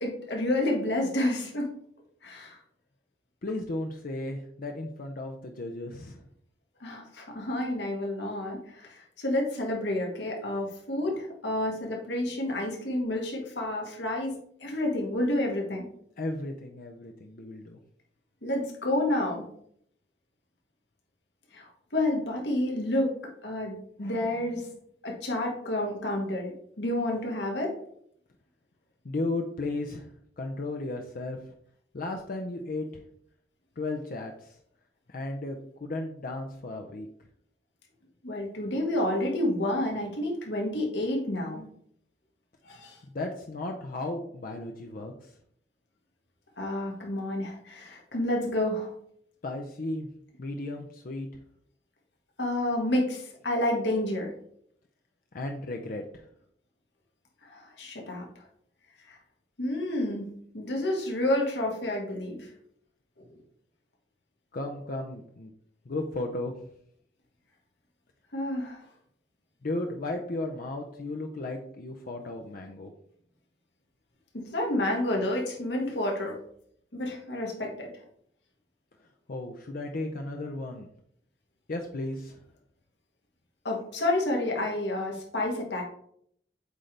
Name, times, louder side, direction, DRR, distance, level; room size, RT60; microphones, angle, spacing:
voice 1, 0.0-1.7 2.2-2.6 6.8-14.3 14.6-15.8 18.4-19.4 21.5-23.1 23.4-24.7 25.0-27.7 38.2-41.7 42.6-43.0 46.6-48.9 52.4-54.3 57.4-58.3 59.1-59.2 59.6-60.2 60.5-62.5 68.3-68.8 74.5-76.4 76.9-77.9 83.6-85.8, left 1 dB, 80° left, 0 dB, 1.7 m, -29 dB
voice 2, 3.4-6.2 16.2-17.8 29.0-31.5 31.9-33.0 33.8-34.6 35.1-37.1 43.0-45.3 49.4-50.1 50.4-51.3 55.3-56.3 64.5-65.5 65.9-66.6 69.6-72.9 79.3-80.9 81.7-82.4, left 2 dB, 55° left, 3 dB, 0.6 m, -35 dB
8.1 x 3.3 x 3.8 m, 0.67 s
head